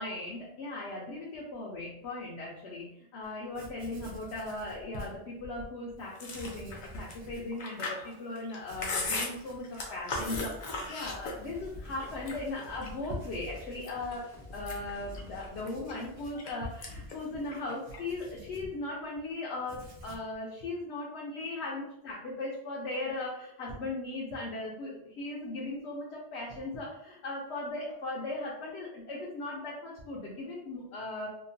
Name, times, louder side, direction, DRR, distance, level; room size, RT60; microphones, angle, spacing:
voice 1, 0.0-31.3, left 2 dB, 85° left, -4 dB, 0.9 m, -38 dB
Writing, 3.2-3.3 3.5-5.7 6.2-7.5 8.0-8.1 8.6-19.2 19.5-20.4, equal, 90° right, 0.9 m, -48 dB
Chewing mastication, 6.2-11.6 12.0-13.1 13.6-14.1 14.5-16.5 16.8-17.1 17.4-18.2, left 3 dB, 50° left, 0.6 m, -37 dB
sound 1, 10.3-15.5, left 1 dB, 5° right, 0.5 m, -48 dB
2.8 x 2.2 x 2.6 m, 0.77 s
omnidirectional pair, 1.1 m